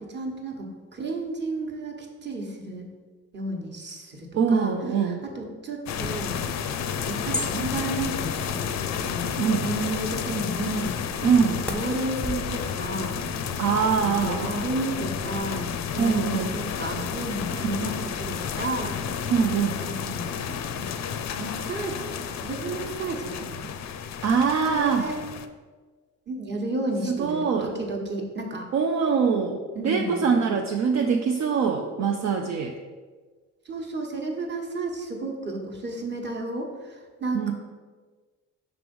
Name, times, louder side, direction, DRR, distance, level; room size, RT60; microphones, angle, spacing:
voice 1, 0.1-2.9 3.3-6.6 7.1-8.6 9.0-11.2 11.5-13.2 14.0-19.0 19.8-21.0 21.4-23.7 24.7-25.1 26.3-28.7 29.7-30.1 33.6-37.5, right 2 dB, 35° right, 1 dB, 1.2 m, -32 dB
voice 2, 4.3-5.2 9.4-9.7 11.2-11.6 13.6-14.7 16.0-16.6 17.6-17.7 19.3-19.8 24.2-25.0 27.1-27.7 28.7-32.7 37.3-37.5, right 6 dB, 60° right, 3 dB, 0.6 m, -23 dB
sound 1, 5.9-25.5, left 7 dB, 60° left, 0.5 m, -31 dB
sound 2, 6.0-12.5, left 1 dB, 5° left, 0.6 m, -39 dB
6.0 x 3.3 x 5.3 m, 1.4 s
cardioid pair, 90°, 30 cm